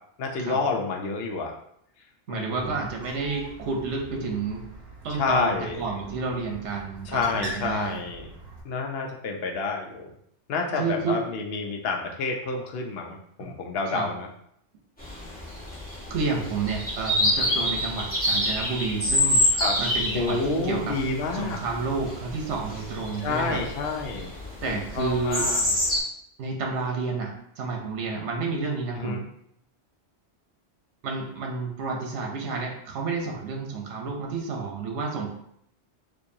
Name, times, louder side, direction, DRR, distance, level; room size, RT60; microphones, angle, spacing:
voice 1, 0.2-1.5 2.3-2.8 5.2-5.8 7.1-8.3 8.6-10.1 10.5-14.3 19.6-19.8 20.1-21.6 23.2-24.3 24.7-25.7 29.0-29.2, left 4 dB, 65° left, 2 dB, 0.8 m, -29 dB
voice 2, 2.3-4.6 5.0-8.0 10.8-11.2 13.9-14.1 16.1-19.4 19.8-21.0 21.3-23.6 24.6-25.5 26.4-29.2 31.0-35.3, right 4 dB, 80° right, 1 dB, 1.0 m, -30 dB
Bird, 2.5-8.6, right 2 dB, 65° right, 1.3 m, -42 dB
sound 1, 15.0-26.0, left 1 dB, 10° left, 0.8 m, -27 dB
4.5 x 2.6 x 2.6 m, 0.71 s
omnidirectional pair, 1.2 m